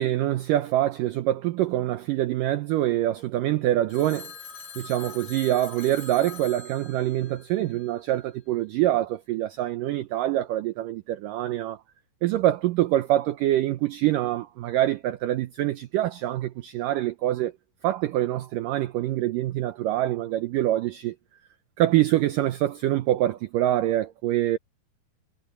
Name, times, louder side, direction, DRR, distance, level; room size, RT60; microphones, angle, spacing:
voice 1, 0.0-4.3 4.8-11.8 12.2-17.5 17.8-21.2 21.8-24.6, right 14 dB, 75° right, 2.1 m, -25 dB
Telephone, 3.9-8.1, left 5 dB, 55° left, 4.4 m, -43 dB
omnidirectional pair, 4.6 m